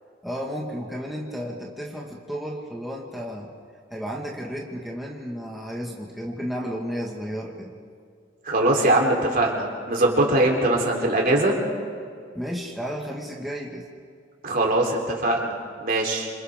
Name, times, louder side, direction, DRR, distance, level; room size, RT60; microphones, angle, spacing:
voice 1, 0.2-3.5 3.9-7.7 12.3-13.9, equal, ahead, -3 dB, 1.6 m, -33 dB
voice 2, 8.5-11.6 14.4-16.3, right 1 dB, 50° right, 0 dB, 3.5 m, -22 dB
27.5 x 27.0 x 3.6 m, 2.2 s
head